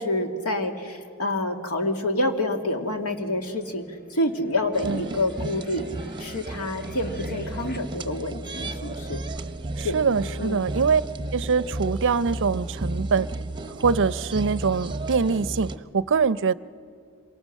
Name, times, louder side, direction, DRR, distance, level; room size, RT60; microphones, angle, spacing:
voice 1, 0.0-5.9 6.2-9.2 9.8-10.0 10.4-10.7, left 1 dB, 75° left, 5 dB, 2.1 m, -27 dB
sound 1, 2.9-7.8, equal, 45° left, 2.3 m, -43 dB
sound 2, 4.7-15.8, right 2 dB, 20° right, 0.8 m, -33 dB
voice 2, 4.8-5.2 9.8-11.0 11.3-13.3 13.7-16.5, right 5 dB, 55° right, 17 dB, 0.5 m, -24 dB
27.0 x 24.5 x 6.5 m, 2.3 s
head